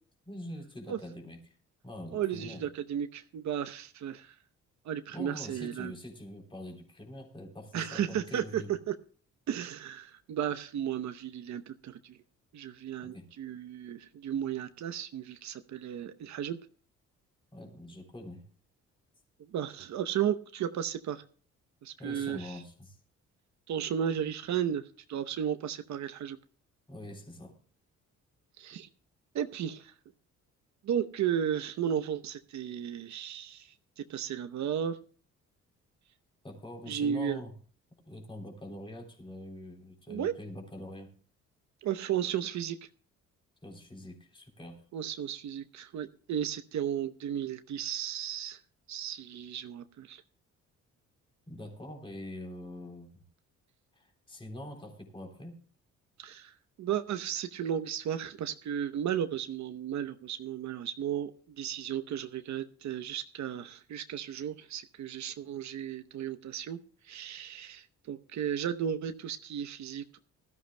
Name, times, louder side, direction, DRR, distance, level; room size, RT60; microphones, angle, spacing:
voice 1, 0.3-1.6 1.8-2.6 5.1-8.7 13.0-13.3 17.5-18.5 22.0-23.0 26.9-27.5 36.4-37.5 38.1-41.1 43.6-44.8 51.5-53.2 54.0-55.6, left 1 dB, 15° left, 2 dB, 3.5 m, -44 dB
voice 2, 2.1-4.3 4.9-5.9 7.7-8.6 8.9-9.0 9.5-12.2 12.5-16.6 19.5-21.2 21.8-22.6 23.7-26.4 28.6-28.9 29.3-29.9 30.8-33.7 34.0-35.0 36.9-37.4 40.1-40.3 41.8-42.8 44.9-48.6 48.9-50.2 56.2-56.5 56.8-61.3 61.6-66.8 67.1-70.2, right 9 dB, 65° right, 9 dB, 0.9 m, -34 dB
19.5 x 13.5 x 2.2 m, 0.42 s
cardioid pair, 90°, 30 cm